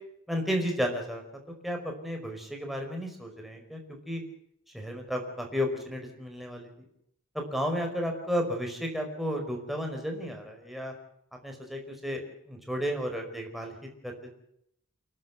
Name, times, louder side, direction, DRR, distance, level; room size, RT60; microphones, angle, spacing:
voice 1, 0.3-1.2 1.6-4.2 4.7-6.7 7.3-10.9 11.4-13.7 14.0-14.3, equal, ahead, 2 dB, 4.9 m, -33 dB
29.0 x 12.0 x 8.2 m, 0.74 s
head